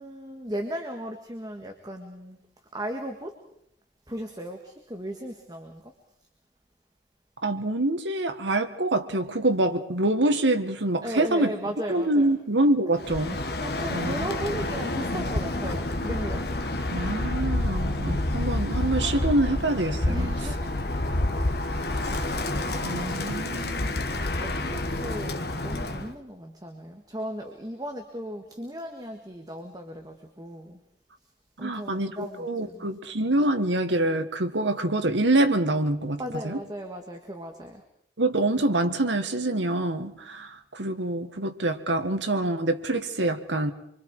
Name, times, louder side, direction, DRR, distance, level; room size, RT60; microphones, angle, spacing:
voice 1, 0.0-2.4 2.7-3.4 4.1-5.9 11.0-12.4 13.6-16.6 20.1-20.7 21.0-21.5 24.4-30.8 31.6-32.9 36.2-37.8, equal, 20° right, 1.7 m, -36 dB
voice 2, 7.4-11.5 11.9-13.4 13.9-14.1 16.9-20.3 22.8-24.0 31.6-36.6 38.2-43.7, right 2 dB, 90° right, 1.6 m, -26 dB
Bird, 13.0-26.1, left 1 dB, 60° left, 1.5 m, -28 dB
25.5 x 24.5 x 4.8 m
head